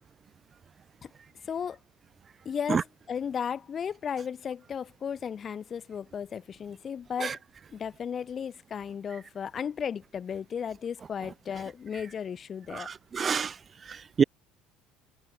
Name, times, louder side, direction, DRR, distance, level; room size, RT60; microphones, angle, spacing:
voice 1, 1.4-1.8 2.4-7.4 7.7-12.9, left 7 dB, 25° left, 5.1 m, -35 dB
voice 2, 12.7-13.5 13.9-14.2, right 6 dB, 25° right, 3.3 m, -27 dB
cardioid pair, 155°, 0 cm